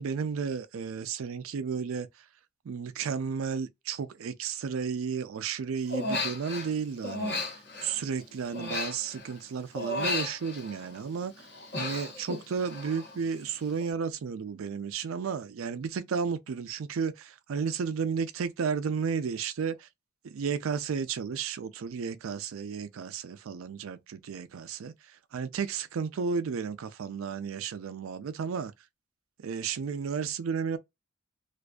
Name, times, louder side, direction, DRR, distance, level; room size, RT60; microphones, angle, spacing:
voice 1, 0.0-2.1 2.7-11.3 11.8-19.9 20.2-24.9 25.3-28.7 29.4-30.8, right 6 dB, 85° right, 0.4 m, -33 dB
Human voice, 5.9-6.7 7.0-9.4 9.8-11.0 11.4-13.2 13.4-13.8, left 2 dB, 55° left, 1.0 m, -34 dB
2.5 x 2.3 x 2.3 m
head